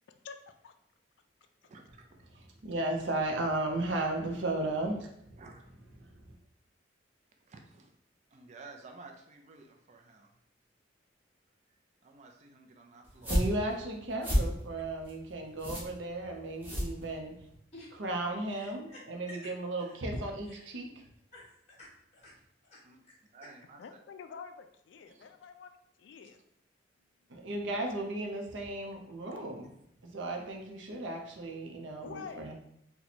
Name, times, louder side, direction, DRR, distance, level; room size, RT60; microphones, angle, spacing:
voice 1, 0.1-0.7 23.8-26.4 32.0-32.5, left 6 dB, 70° left, 8 dB, 0.3 m, -48 dB
voice 2, 1.6-2.1 5.4-5.6 7.5-7.9 8.3-10.3 12.0-13.4 22.8-23.0 23.3-24.0 25.1-25.3, right 3 dB, 40° right, 3 dB, 0.4 m, -53 dB
voice 3, 2.6-5.1 6.0-6.1 13.3-17.3 18.0-20.9 27.3-29.7 30.0-32.5, right 2 dB, 80° right, 2 dB, 0.6 m, -35 dB
sound 1, 13.0-17.5, equal, 10° right, 0.8 m, -33 dB
voice 4, 21.3-22.3 22.6-22.8 23.1-23.2, left 1 dB, 35° left, -6 dB, 0.8 m, -52 dB
2.8 x 2.2 x 4.1 m, 0.74 s
head